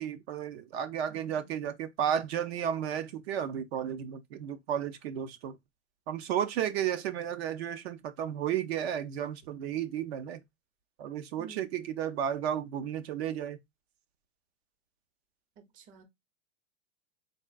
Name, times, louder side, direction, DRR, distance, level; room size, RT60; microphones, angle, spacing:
voice 1, 0.0-5.6 6.1-10.4 11.0-13.6, right 9 dB, 60° right, 0.8 m, -33 dB
voice 2, 11.4-11.7 15.6-16.0, right 5 dB, 25° right, 0.7 m, -52 dB
3.9 x 3.8 x 2.3 m
supercardioid pair, 150°, 35 cm